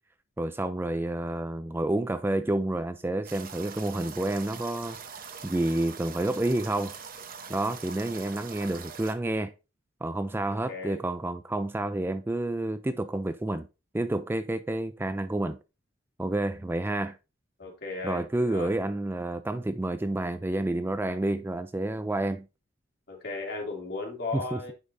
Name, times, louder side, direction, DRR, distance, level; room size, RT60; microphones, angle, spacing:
voice 1, 0.4-5.0 5.4-6.9 7.5-9.5 10.0-13.7 13.9-15.6 16.2-17.2 18.0-22.4 24.3-24.7, right 1 dB, 10° right, 0.4 m, -29 dB
sound 1, 3.2-9.1, right 6 dB, 50° right, 0.9 m, -43 dB
voice 2, 10.7-11.0 17.6-18.7 23.1-24.7, left 3 dB, 55° left, 2.8 m, -36 dB
9.7 x 5.3 x 2.6 m
head